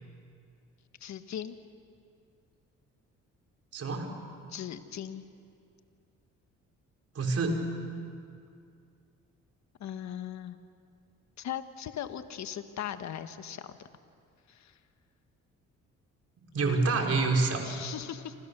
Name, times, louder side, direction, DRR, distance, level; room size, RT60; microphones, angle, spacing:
voice 1, 1.0-1.6 4.5-5.2 9.8-10.6 11.4-13.7 14.5-14.8 17.6-18.3, left 10 dB, 65° left, 9 dB, 1.5 m, -39 dB
voice 2, 3.7-4.1 7.1-7.7 16.5-17.6, right 3 dB, 55° right, 2 dB, 4.5 m, -27 dB
28.5 x 26.5 x 6.9 m, 2.3 s
cardioid pair, 90°, 30 cm